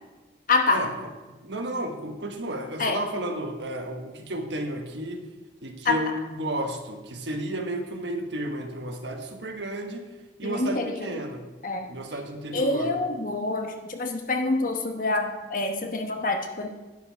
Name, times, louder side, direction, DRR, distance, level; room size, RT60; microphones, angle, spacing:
voice 1, 0.5-0.8 2.8-3.0 5.8-6.0 10.4-11.2 11.6-11.9 12.5-16.7, left 3 dB, 45° left, 5 dB, 1.0 m, -26 dB
voice 2, 1.3-5.3 5.6-10.1 10.4-11.4 11.9-12.9, right 1 dB, 70° right, 4 dB, 1.3 m, -32 dB
11.5 x 9.3 x 4.6 m, 1.2 s
head